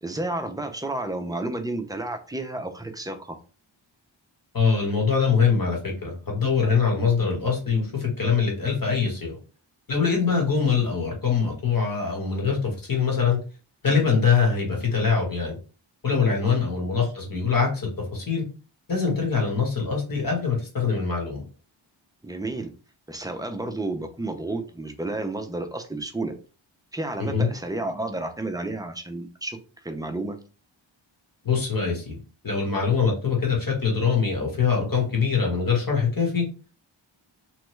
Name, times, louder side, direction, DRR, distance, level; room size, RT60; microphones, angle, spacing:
voice 1, 0.0-3.4 16.4-16.6 22.2-22.7 23.1-26.3 26.9-30.4, right 2 dB, 10° right, 5 dB, 0.3 m, -31 dB
voice 2, 4.5-9.4 9.9-13.4 13.8-15.6 16.0-18.4 18.9-21.4 27.2-27.5 31.4-32.2 32.4-36.4, left 5 dB, 45° left, 0 dB, 1.2 m, -23 dB
3.0 x 2.2 x 3.1 m, 0.35 s
wide cardioid pair, 100°, 48 cm